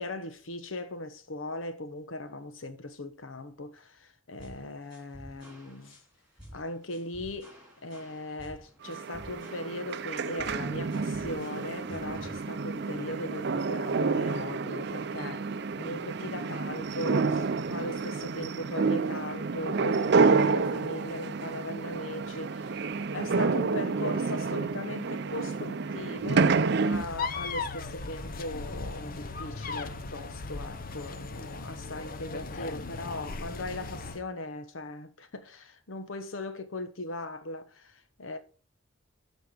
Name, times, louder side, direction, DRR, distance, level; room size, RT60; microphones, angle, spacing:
voice 1, 0.0-6.0 6.5-7.5 7.8-15.5 15.8-22.8 23.1-38.4, left 1 dB, 80° left, 1.0 m, -39 dB
sound 1, 4.4-12.4, equal, 5° right, 3.4 m, -50 dB
sound 2, 8.9-27.0, right 4 dB, 55° right, 0.5 m, -29 dB
sound 3, 26.9-34.2, left 4 dB, 45° left, 0.7 m, -37 dB
13.0 x 4.6 x 5.1 m
head